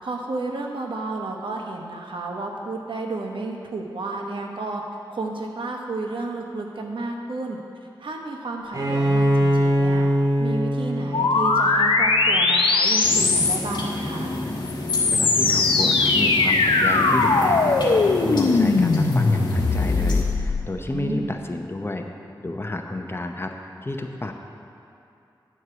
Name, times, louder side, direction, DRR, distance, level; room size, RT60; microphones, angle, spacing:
voice 1, 0.0-4.8 5.1-7.6 8.0-10.1 10.4-14.3 20.9-21.3, right 2 dB, 75° right, 1 dB, 1.0 m, -31 dB
Bowed string instrument, 8.7-12.3, equal, 45° right, 1.7 m, -22 dB
sound 1, 11.1-13.8 14.6-20.6, left 3 dB, 85° left, 0.7 m, -20 dB
sound 2, 13.0-20.2, left 2 dB, 55° left, 1.4 m, -30 dB
voice 2, 15.1-22.0 22.4-23.5 23.8-24.3, left 2 dB, 30° left, 4 dB, 0.8 m, -31 dB
9.6 x 4.6 x 6.9 m, 2.7 s
wide cardioid pair, 60°, 9 cm